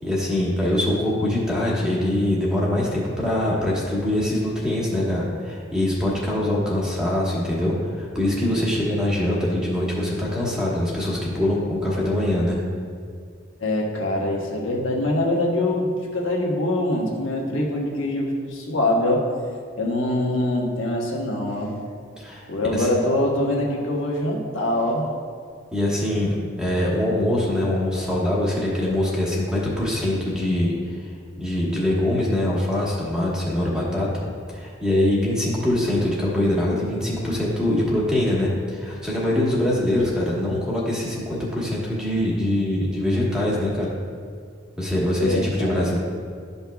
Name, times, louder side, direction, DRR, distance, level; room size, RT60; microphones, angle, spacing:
voice 1, 0.0-12.6 22.2-22.4 22.7-22.9 25.7-31.0 31.4-34.1 34.5-43.9 44.8-46.0, left 1 dB, 5° right, -6 dB, 1.3 m, -23 dB
voice 2, 13.6-19.3 19.8-21.7 22.5-25.1 45.2-45.8, left 1 dB, 85° left, -2 dB, 1.2 m, -24 dB
12.0 x 5.4 x 2.3 m, 2.1 s
head